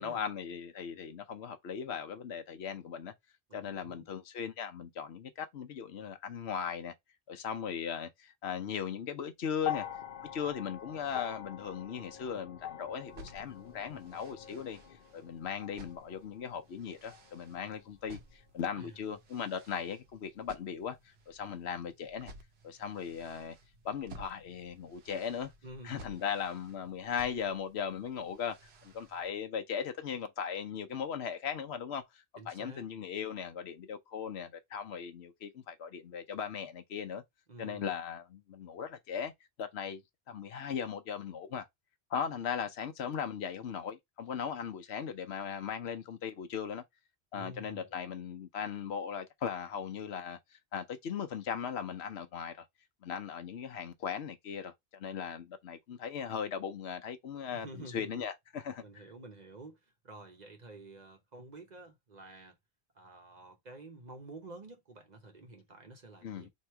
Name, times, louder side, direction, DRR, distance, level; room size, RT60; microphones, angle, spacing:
voice 1, 0.0-3.1 3.5-6.9 7.3-9.9 10.3-14.8 15.1-22.3 22.6-23.6 23.8-25.5 25.8-37.2 37.6-39.3 39.6-40.0 40.3-41.7 42.1-46.8 47.3-52.6 53.0-57.7 57.9-58.8 66.2-66.5, left 7 dB, 75° left, 1.0 m, -38 dB
voice 2, 3.5-4.1 18.8-19.0 25.6-26.2 32.4-32.9 37.5-37.9 47.3-47.9 57.5-58.2 58.8-62.6 62.9-66.5, right 2 dB, 45° right, 1.0 m, -50 dB
sound 1, 9.6-17.9 19.0-19.1, left 10 dB, 55° left, 0.7 m, -44 dB
sound 2, 13.1-29.3, right 1 dB, 70° right, 1.1 m, -56 dB
3.0 x 2.8 x 4.4 m
omnidirectional pair, 1.1 m